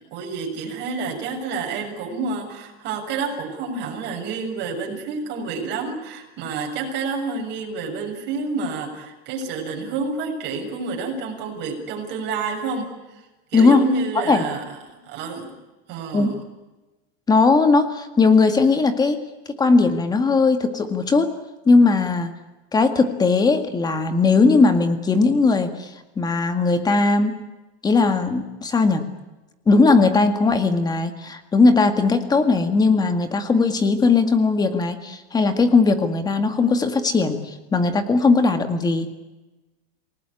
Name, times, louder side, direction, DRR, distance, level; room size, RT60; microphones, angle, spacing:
voice 1, 0.0-12.9 13.5-14.6 14.9-15.5 15.9-16.3, right 4 dB, 35° right, 2 dB, 6.7 m, -29 dB
voice 2, 17.3-19.2 19.6-21.3 21.7-22.3 22.7-27.4 27.8-29.0 29.7-39.1, left 3 dB, 10° left, 8 dB, 1.9 m, -18 dB
28.0 x 19.0 x 9.8 m, 1.1 s
supercardioid pair, 165°, 31 cm